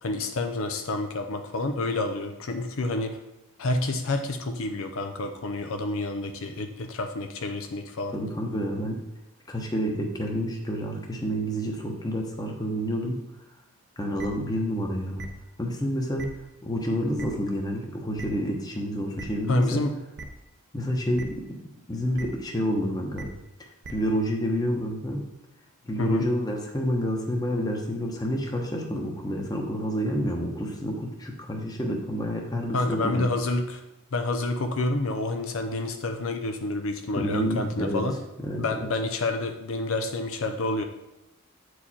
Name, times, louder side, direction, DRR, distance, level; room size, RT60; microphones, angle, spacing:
voice 1, 0.0-3.2 3.6-8.1 19.5-19.9 26.0-26.3 32.7-33.8 34.1-38.2 38.6-40.8, left 2 dB, 65° left, 5 dB, 0.6 m, -28 dB
voice 2, 8.1-9.0 9.5-13.2 14.0-15.3 15.6-16.4 16.6-19.8 20.7-21.4 21.9-23.3 23.9-25.2 25.9-33.3 37.2-38.0 38.4-38.6, equal, 15° left, 1 dB, 1.0 m, -29 dB
sound 1, 14.2-14.3 15.2-15.3 16.2-16.3 17.2-17.3 18.2-18.3 19.2-19.3 20.2-20.3 21.2-21.3 22.2-22.3 23.2-23.3 23.8-23.9, right 3 dB, 50° right, 0.7 m, -38 dB
8.5 x 4.8 x 4.2 m, 0.94 s
head